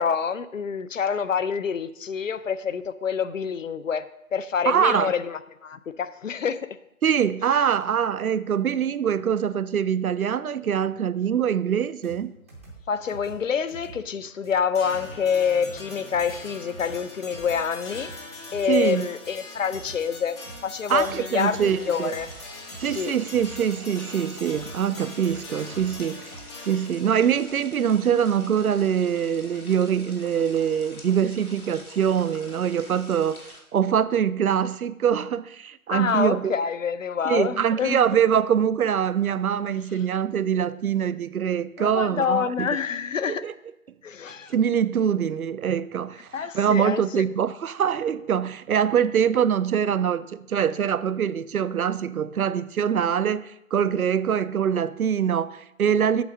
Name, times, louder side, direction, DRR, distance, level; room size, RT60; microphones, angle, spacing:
voice 1, 0.0-4.1 4.3-6.7 12.9-18.1 18.5-22.3 22.8-23.1 35.9-38.2 41.8-43.5 44.0-44.5 46.3-47.2, left 6 dB, 65° left, 0.6 m, -27 dB
voice 2, 4.7-5.1 7.0-12.3 18.7-19.1 20.9-22.1 22.8-26.3 26.6-33.4 33.7-36.5 37.2-42.7 43.3-43.5 44.5-46.3 46.5-56.2, right 8 dB, 75° right, 0.5 m, -24 dB
sound 1, 12.0-26.4, right 3 dB, 10° right, 0.6 m, -46 dB
sound 2, 14.7-27.2, left 2 dB, 20° left, 1.0 m, -42 dB
sound 3, 21.7-33.6, left 2 dB, 80° left, 2.0 m, -46 dB
8.1 x 4.0 x 6.2 m
figure-of-eight pair, 140°, 43 cm